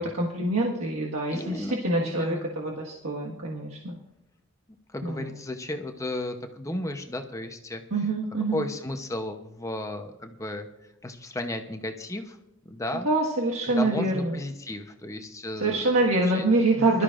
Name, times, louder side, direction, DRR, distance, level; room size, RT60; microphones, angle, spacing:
voice 1, 0.0-3.9 5.0-5.3 7.9-8.6 13.0-14.4 15.6-17.0, right 2 dB, 80° right, -3 dB, 1.6 m, -25 dB
voice 2, 1.3-2.5 4.9-7.8 8.5-10.7 11.0-12.4 12.6-13.1 13.7-15.9 16.2-16.5 16.8-16.9, left 1 dB, 15° left, 5 dB, 0.8 m, -34 dB
21.5 x 12.5 x 2.5 m, 0.87 s
head